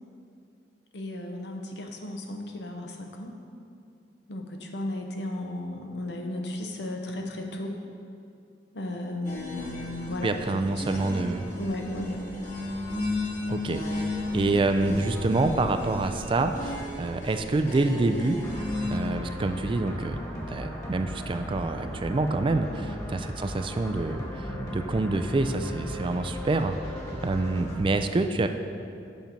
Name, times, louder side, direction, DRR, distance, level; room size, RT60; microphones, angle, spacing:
voice 1, 0.9-3.3 4.3-7.8 8.7-10.5 10.7-11.1 11.6-12.2 13.6-13.8 22.7-23.0, left 1 dB, 75° left, 3 dB, 0.8 m, -35 dB
sound 1, 9.2-18.9, left 2 dB, 50° left, 1.7 m, -34 dB
voice 2, 10.2-11.5 12.3-12.4 13.5-18.6 18.9-20.2 20.5-26.8 27.2-28.5, right 2 dB, 30° right, 7 dB, 0.3 m, -27 dB
sound 2, 18.4-27.8, equal, 20° left, 1.6 m, -37 dB
7.3 x 5.9 x 5.2 m, 2.5 s
head